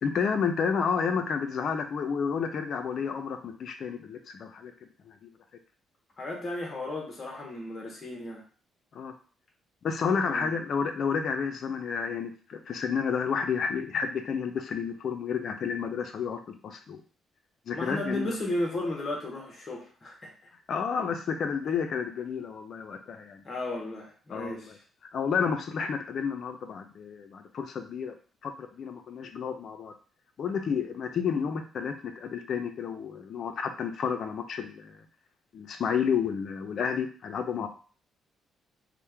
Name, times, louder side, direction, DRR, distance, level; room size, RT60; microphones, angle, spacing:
voice 1, 0.0-5.3 8.9-9.1 9.8-17.0 17.7-18.4 20.7-23.4 24.3-24.8 25.1-28.1 28.4-29.9 30.4-35.0 35.5-37.7, left 6 dB, 60° left, 6 dB, 0.5 m, -31 dB
voice 2, 6.2-8.4 10.3-10.5 17.7-20.3 23.4-24.7, left 1 dB, 35° left, -1 dB, 0.9 m, -34 dB
2.9 x 2.1 x 3.4 m, 0.40 s
cardioid pair, 90°, 0 cm